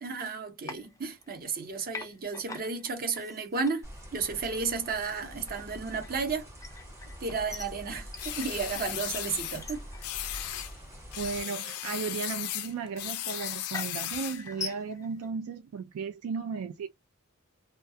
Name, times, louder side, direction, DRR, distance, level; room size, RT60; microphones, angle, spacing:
voice 1, 0.0-3.9 4.1-6.5 7.2-9.9 10.2-10.4, right 4 dB, 45° right, 0.7 m, -33 dB
sound 1, 0.6-1.6 1.9-15.3, left 4 dB, 15° left, 0.3 m, -45 dB
sound 2, 3.8-11.4, equal, 15° right, 0.9 m, -46 dB
sound 3, 8.2-9.6 10.0-10.7 11.1-14.5, left 12 dB, 85° left, 0.4 m, -36 dB
voice 2, 11.2-16.9, right 5 dB, 70° right, 0.3 m, -35 dB
2.3 x 2.2 x 2.6 m
head